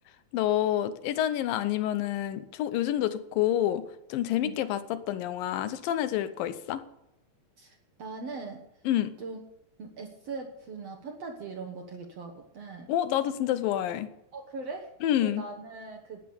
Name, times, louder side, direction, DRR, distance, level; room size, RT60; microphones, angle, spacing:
voice 1, 0.3-3.8 4.1-4.8 5.1-6.8 8.9-9.1 12.9-14.1 15.0-15.4, left 12 dB, 75° left, 13 dB, 2.3 m, -28 dB
voice 2, 7.6-8.6 9.2-9.4 9.8-12.9 14.3-14.9 15.2-16.2, right 3 dB, 65° right, 2 dB, 1.6 m, -40 dB
12.0 x 9.8 x 6.9 m, 0.84 s
omnidirectional pair, 4.5 m